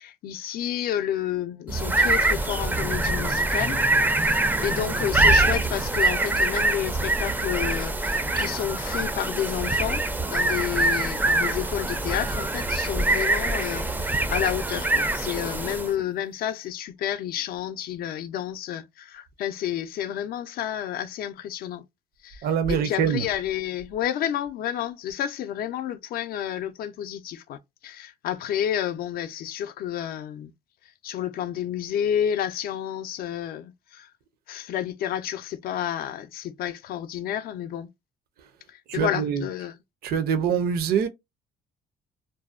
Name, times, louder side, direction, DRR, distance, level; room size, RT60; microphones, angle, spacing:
voice 1, 0.0-3.8 4.3-10.0 10.3-21.8 22.2-30.5 31.0-34.1 34.5-37.9 38.7-39.8, left 10 dB, 60° left, 0.4 m, -30 dB
sound 1, 1.7-16.0, right 2 dB, 10° right, 0.4 m, -24 dB
voice 2, 22.4-23.3 38.9-39.5 40.0-41.1, right 7 dB, 65° right, 0.5 m, -24 dB
2.6 x 2.0 x 2.4 m
cardioid pair, 110°, 17 cm